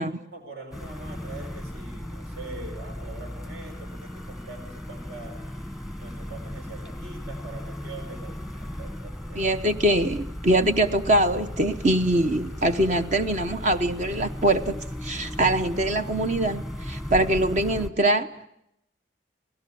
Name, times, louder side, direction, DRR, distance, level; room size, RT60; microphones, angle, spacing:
voice 1, 0.0-5.4 6.0-9.5, right 2 dB, 70° right, 4.3 m, -43 dB
sound 1, 0.7-17.9, equal, 5° right, 1.2 m, -36 dB
voice 2, 9.3-18.5, right 1 dB, 45° right, 0.9 m, -23 dB
28.0 x 18.5 x 8.6 m
head